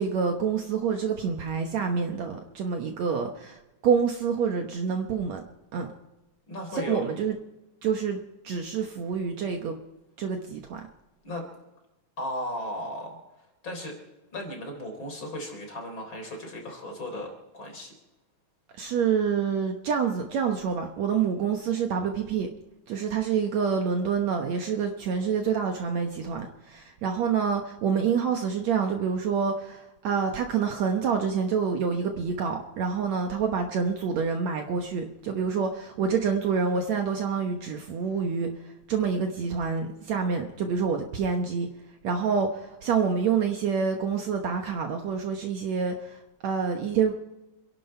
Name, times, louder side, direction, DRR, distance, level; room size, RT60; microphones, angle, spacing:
voice 1, 0.0-5.4 5.7-5.9 6.7-7.4 7.8-9.7 10.2-10.9 18.7-22.5 22.9-41.7 42.0-47.1, right 6 dB, 65° right, 4 dB, 2.1 m, -27 dB
voice 2, 6.5-7.0 11.2-11.4 12.2-13.2 13.6-13.9 14.3-17.9, left 1 dB, 35° left, 2 dB, 4.2 m, -35 dB
27.0 x 11.5 x 4.4 m, 1.0 s
omnidirectional pair, 3.9 m